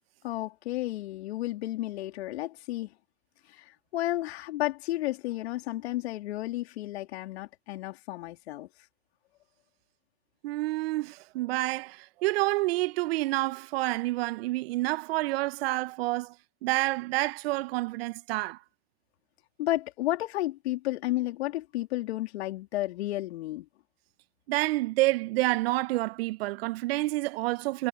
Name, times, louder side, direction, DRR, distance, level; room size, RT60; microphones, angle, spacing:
voice 1, 0.2-2.9 3.5-8.7 19.6-23.7, left 16 dB, 65° left, 3.7 m, -32 dB
voice 2, 10.4-16.3 16.6-18.6 24.5-27.9, right 20 dB, 60° right, 1.6 m, -28 dB
hypercardioid pair, 90°, 34 cm